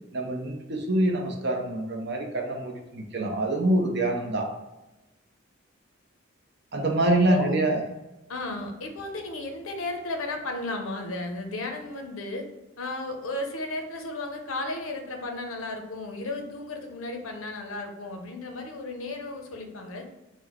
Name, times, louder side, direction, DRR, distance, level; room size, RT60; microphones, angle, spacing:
voice 1, 0.1-4.5 6.7-7.8, right 1 dB, 55° right, 2 dB, 0.7 m, -25 dB
voice 2, 8.3-12.5 12.8-20.1, left 2 dB, 90° left, 4 dB, 0.7 m, -34 dB
4.3 x 2.2 x 4.4 m, 1.0 s
head